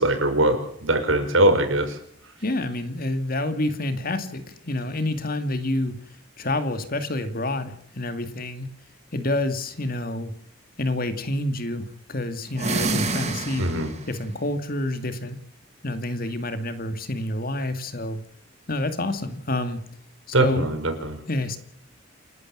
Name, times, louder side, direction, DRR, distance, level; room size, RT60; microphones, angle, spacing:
voice 1, 0.0-2.0 13.6-13.9 20.3-21.2, right 1 dB, 75° right, 5 dB, 5.7 m, -21 dB
voice 2, 2.4-6.0 6.4-8.7 9.1-10.3 10.8-13.7 14.1-15.4 15.8-18.2 18.7-19.8 20.4-20.7 21.3-21.6, left 1 dB, 45° left, 9 dB, 2.3 m, -28 dB
sound 1, 12.5-14.1, right 3 dB, 35° right, 3.0 m, -27 dB
29.0 x 12.5 x 7.6 m, 0.67 s
head